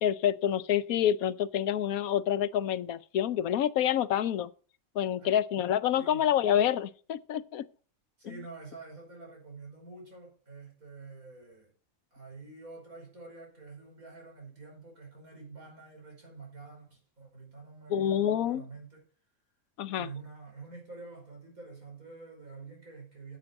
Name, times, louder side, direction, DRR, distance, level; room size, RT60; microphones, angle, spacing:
voice 1, 0.0-4.5 4.9-7.6 17.9-18.7 19.8-20.1, left 10 dB, 85° left, 1.1 m, -27 dB
voice 2, 8.2-11.7 12.1-19.0 19.9-23.4, right 4 dB, 90° right, 5.7 m, -47 dB
9.8 x 8.6 x 5.9 m
omnidirectional pair, 1.5 m